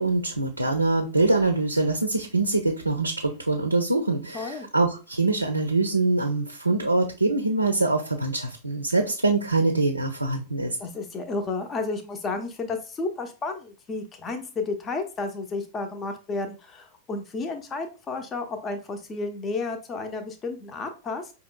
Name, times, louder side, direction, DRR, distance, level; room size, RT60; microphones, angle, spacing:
voice 1, 0.0-10.8, right 3 dB, 85° right, 4 dB, 0.4 m, -24 dB
voice 2, 4.3-4.7 10.8-21.3, left 3 dB, 25° left, 5 dB, 0.6 m, -32 dB
5.1 x 2.8 x 2.2 m, 0.33 s
figure-of-eight pair, 90°, 0 cm